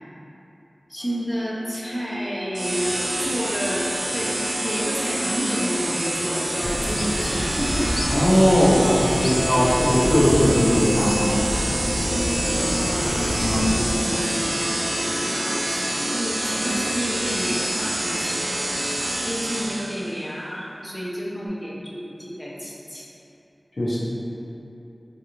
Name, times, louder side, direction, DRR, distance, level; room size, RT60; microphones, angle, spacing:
voice 1, 0.9-3.8 4.1-4.4 4.6-8.2 9.1-9.3 12.5-14.5 15.3-18.4 19.2-23.1, equal, 15° left, -5 dB, 0.6 m, -30 dB
sound 1, 1.0-17.9, equal, 30° right, 0.7 m, -32 dB
sound 2, 2.5-20.1, right 1 dB, 70° right, 0.5 m, -27 dB
sound 3, 6.6-14.0, equal, 45° left, 0.3 m, -29 dB
voice 2, 8.1-11.7 13.4-13.6 14.0-14.3 23.8-24.0, equal, 70° left, -8 dB, 0.8 m, -20 dB
3.8 x 2.4 x 3.0 m, 2.8 s
wide cardioid pair, 60°, 0 cm